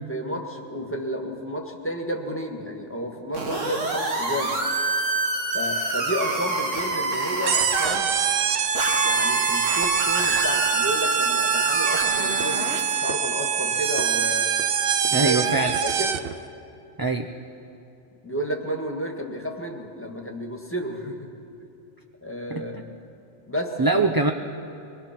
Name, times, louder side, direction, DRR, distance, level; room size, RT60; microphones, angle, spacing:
voice 1, 0.1-4.5 5.5-8.1 9.0-14.5 15.1-15.6 15.8-16.2 18.2-21.3 22.2-22.9 23.5-24.1, equal, 10° left, 2 dB, 1.7 m, -31 dB
sound 1, 3.3-8.0 8.7-12.9, right 3 dB, 70° right, 2.0 m, -27 dB
sound 2, 7.5-16.4, right 7 dB, 55° right, 0.8 m, -24 dB
voice 2, 15.1-15.7 17.0-17.3 22.5-22.8 23.8-24.3, right 3 dB, 25° right, 3 dB, 0.5 m, -23 dB
23.0 x 20.5 x 6.0 m, 2.8 s
omnidirectional pair, 1.3 m